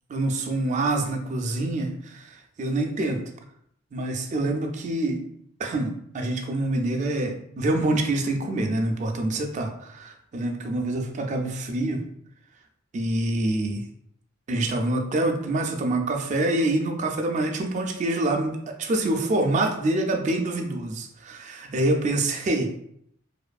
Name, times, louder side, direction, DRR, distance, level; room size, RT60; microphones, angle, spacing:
voice 1, 0.1-3.2 3.9-5.2 5.6-12.0 12.9-13.8 14.5-22.7, right 2 dB, 35° right, 3 dB, 0.3 m, -26 dB
2.6 x 2.4 x 2.2 m, 0.70 s
head